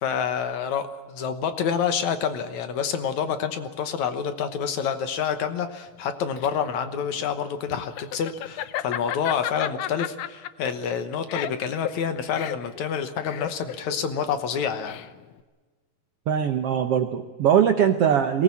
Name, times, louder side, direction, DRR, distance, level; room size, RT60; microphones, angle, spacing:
voice 1, 0.0-15.0, left 7 dB, 65° left, 9 dB, 2.3 m, -28 dB
Laughter, 6.0-15.4, left 12 dB, 80° left, 1.4 m, -34 dB
voice 2, 16.3-18.4, right 8 dB, 70° right, 7 dB, 1.4 m, -21 dB
21.5 x 19.0 x 8.5 m, 1.3 s
omnidirectional pair, 3.9 m